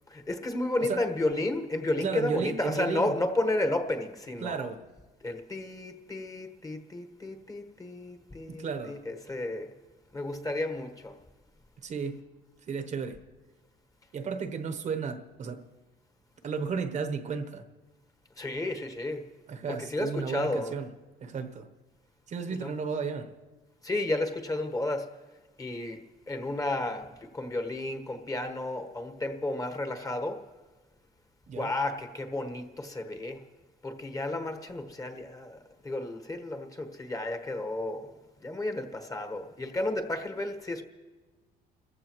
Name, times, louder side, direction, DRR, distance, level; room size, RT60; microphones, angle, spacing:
voice 1, 0.1-4.7 5.2-9.7 10.1-11.1 18.4-19.2 19.7-20.7 22.6-22.7 23.8-25.1 25.6-26.0 26.3-30.4 31.5-33.4 33.8-38.1 38.4-40.8, left 2 dB, 20° left, 1.3 m, -32 dB
voice 2, 2.0-3.1 4.4-4.8 8.5-9.0 11.8-12.2 12.7-13.2 14.1-15.7 16.4-17.6 19.5-20.9 21.2-21.7 22.3-23.3 31.5-31.7, right 5 dB, 45° right, 1.0 m, -33 dB
30.0 x 14.5 x 3.0 m
cardioid pair, 110°, 17 cm